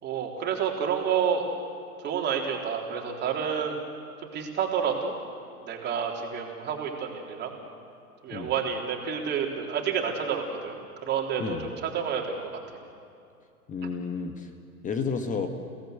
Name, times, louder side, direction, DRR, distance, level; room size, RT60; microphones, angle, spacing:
voice 1, 0.0-1.4 2.0-3.8 4.3-5.1 5.6-7.5 8.2-12.5, right 7 dB, 20° right, 0 dB, 3.7 m, -29 dB
voice 2, 13.7-14.5 14.8-15.5, left 5 dB, 15° left, 6 dB, 1.5 m, -31 dB
30.0 x 18.0 x 8.0 m, 2.5 s
figure-of-eight pair, 105°, 45 cm